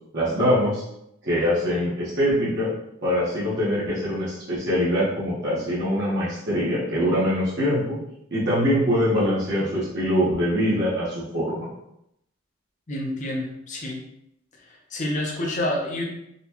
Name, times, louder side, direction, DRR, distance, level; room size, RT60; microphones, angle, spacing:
voice 1, 0.1-0.8 1.2-2.7 3.0-8.0 8.3-11.7, equal, 55° right, -9 dB, 1.1 m, -23 dB
voice 2, 12.9-14.0 14.9-16.0, left 1 dB, 40° left, 0 dB, 0.7 m, -28 dB
4.0 x 2.3 x 2.8 m, 0.80 s
head